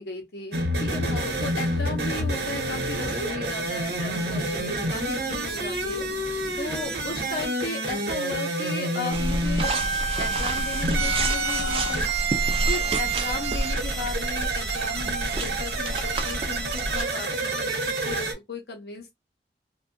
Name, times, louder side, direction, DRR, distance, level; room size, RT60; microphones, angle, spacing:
voice 1, 0.0-6.1 6.6-9.8 10.2-12.1 12.7-19.1, left 3 dB, 65° left, 0.7 m, -36 dB
sound 1, 0.5-18.3, right 2 dB, 65° right, 0.8 m, -28 dB
Rain, 0.8-7.4, left 1 dB, 5° left, 1.0 m, -44 dB
sound 2, 9.1-17.0, right 2 dB, 30° right, 0.3 m, -29 dB
2.6 x 2.2 x 2.6 m
head